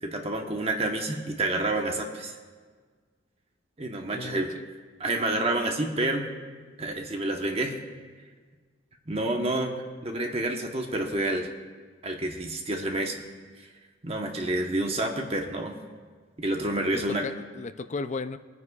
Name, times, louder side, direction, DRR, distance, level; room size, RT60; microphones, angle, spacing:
voice 1, 0.0-2.4 3.8-4.5 5.0-6.3 6.8-7.8 9.1-11.5 12.0-13.2 14.0-15.8 16.4-17.3, right 2 dB, 35° right, 3 dB, 1.1 m, -29 dB
voice 2, 4.1-4.7 16.9-18.4, left 4 dB, 40° left, 10 dB, 0.4 m, -35 dB
24.0 x 9.7 x 2.4 m, 1.5 s
head